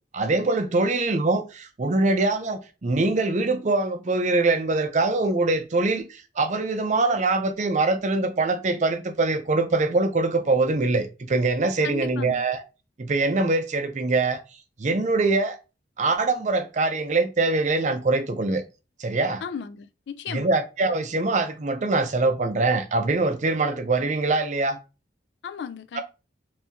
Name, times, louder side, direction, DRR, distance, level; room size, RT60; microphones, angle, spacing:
voice 1, 0.1-12.6 13.0-14.4 14.8-15.6 16.0-18.6 19.0-19.4 20.3-24.8 25.9-26.0, right 3 dB, 40° right, 0.5 m, -23 dB
voice 2, 11.8-12.5 19.4-20.5 25.4-26.0, left 7 dB, 70° left, 0.3 m, -35 dB
3.5 x 2.7 x 2.7 m
head